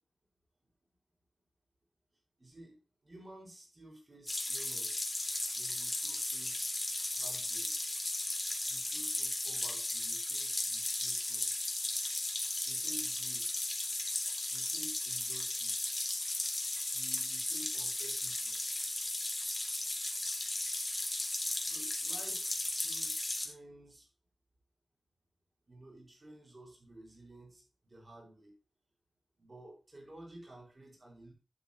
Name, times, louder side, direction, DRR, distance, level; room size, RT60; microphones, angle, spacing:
voice 1, 2.4-2.8 3.0-5.1 5.5-6.8 7.2-7.7 8.7-11.6 12.6-13.6 14.5-16.0 16.9-18.6 21.6-24.1 25.7-28.6 29.4-31.3, right 1 dB, 30° right, -1 dB, 5.2 m, -53 dB
sound 1, 4.3-23.5, left 2 dB, 20° left, 2.4 m, -35 dB
11.5 x 7.6 x 3.0 m, 0.31 s
wide cardioid pair, 115°, 0 cm